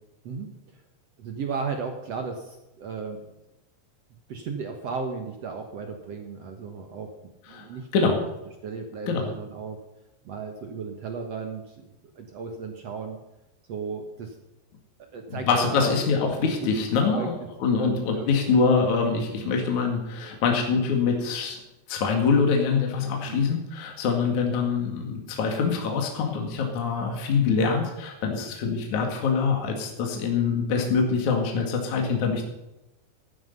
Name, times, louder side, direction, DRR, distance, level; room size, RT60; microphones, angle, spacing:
voice 1, 1.2-3.2 4.3-7.1 7.5-8.3 8.6-9.8 10.2-11.9 12.1-13.2 13.7-14.3 15.1-16.0 16.4-16.9 17.1-17.3 17.7-18.2 18.5-18.6 19.4-19.6 23.3-23.4, right 5 dB, 65° right, 4 dB, 1.6 m, -35 dB
voice 2, 15.3-17.4 17.6-21.6 21.9-32.4, left 5 dB, 50° left, 2 dB, 3.1 m, -24 dB
14.5 x 12.0 x 5.5 m, 0.94 s
omnidirectional pair, 4.9 m